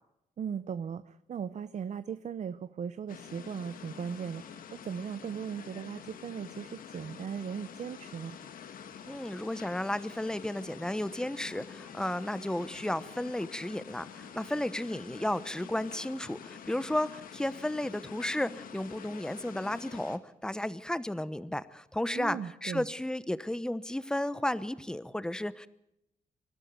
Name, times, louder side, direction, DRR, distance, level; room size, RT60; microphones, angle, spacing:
voice 1, 0.4-8.4 22.1-22.9, right 7 dB, 55° right, 13 dB, 0.8 m, -38 dB
sound 1, 3.1-20.2, left 8 dB, 85° left, 1.8 m, -47 dB
voice 2, 9.1-25.7, left 1 dB, 5° left, 15 dB, 1.0 m, -33 dB
25.0 x 12.5 x 9.4 m, 0.83 s
cardioid pair, 110°, 14 cm